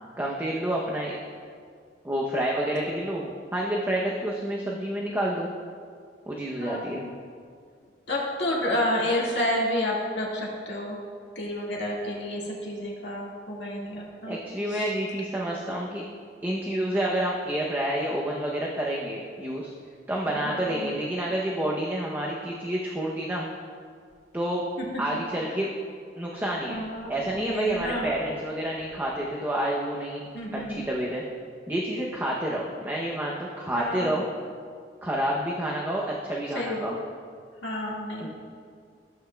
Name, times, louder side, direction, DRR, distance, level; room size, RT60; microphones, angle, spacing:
voice 1, 0.2-1.2 2.0-5.5 6.3-7.0 14.3-16.0 16.4-19.7 20.1-23.5 24.3-24.6 25.0-25.7 26.2-26.8 27.1-31.2 31.7-34.3 35.0-36.9 38.2-38.3, right 1 dB, 10° right, -3 dB, 0.7 m, -29 dB
voice 2, 6.6-7.1 8.1-11.0 11.4-14.4 14.7-14.9 20.4-21.0 26.7-28.2 30.3-30.9 33.7-34.1 36.5-37.0 37.6-38.3, left 1 dB, 75° left, -4 dB, 1.9 m, -30 dB
14.5 x 8.0 x 2.3 m, 2.1 s
head